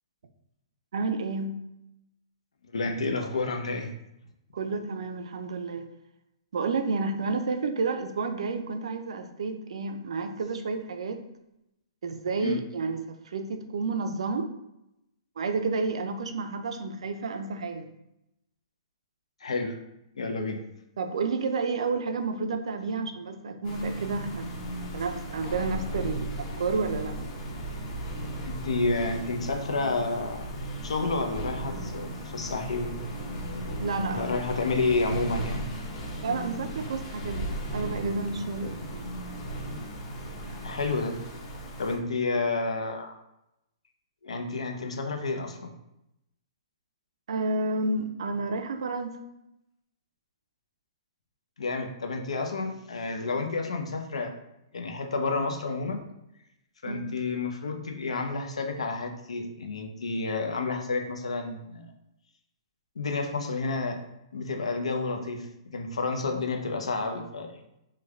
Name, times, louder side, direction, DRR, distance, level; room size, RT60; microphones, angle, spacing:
voice 1, 0.9-1.6 4.5-5.9 6.5-11.2 12.0-14.5 15.4-17.9 21.0-24.5 24.9-27.2 33.8-34.2 36.2-39.0 47.3-49.2 56.9-57.1, right 3 dB, 75° right, 7 dB, 0.4 m, -30 dB
voice 2, 2.6-3.9 12.4-12.6 19.4-19.8 20.2-20.6 28.4-30.5 30.8-33.0 34.1-35.6 40.6-41.2 41.8-43.2 44.2-45.7 51.6-54.3 54.7-56.0 56.8-61.9 63.0-64.0 64.3-65.5 65.7-67.5, left 3 dB, 85° left, 4 dB, 0.6 m, -30 dB
sound 1, 23.6-42.0, right 1 dB, 30° left, 0.8 m, -36 dB
3.2 x 2.2 x 3.5 m, 0.86 s
hypercardioid pair, 135°, 3 cm